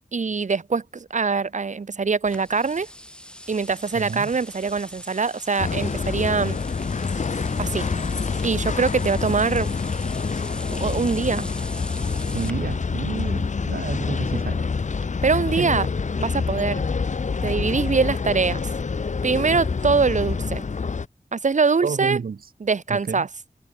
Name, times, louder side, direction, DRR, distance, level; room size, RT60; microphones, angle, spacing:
voice 1, 0.1-2.9 3.5-6.6 7.6-7.9 8.4-9.7 10.7-11.5 15.2-15.9 16.2-16.8 17.4-18.7 19.2-20.6 21.3-22.2 22.6-23.3, right 4 dB, 55° right, 1.1 m, -23 dB
sound 1, 2.2-12.5, equal, 5° left, 7.8 m, -41 dB
voice 2, 3.9-4.3 12.3-14.6 15.3-15.7 21.8-22.4 22.9-23.3, right 6 dB, 90° right, 1.4 m, -30 dB
sound 2, 5.6-21.1, left 5 dB, 55° left, 0.9 m, -27 dB
wide cardioid pair, 95°, 15 cm